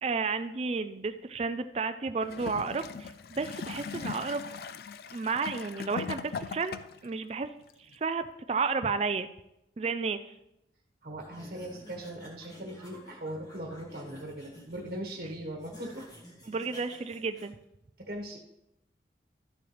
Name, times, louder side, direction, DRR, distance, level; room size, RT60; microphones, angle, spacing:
voice 1, 0.0-4.4 5.1-6.8 7.0-7.5 7.8-9.3 9.8-10.3 16.5-17.6, right 4 dB, 35° right, 10 dB, 0.4 m, -32 dB
Gurgling / Toilet flush, 2.2-7.1 7.9-8.0, left 5 dB, 60° left, 0.4 m, -40 dB
voice 2, 11.0-16.0 18.0-18.4, right 1 dB, 55° right, 2 dB, 1.2 m, -39 dB
sound 1, 11.2-17.5, equal, 20° left, 2.0 m, -51 dB
12.5 x 6.9 x 3.2 m, 0.86 s
head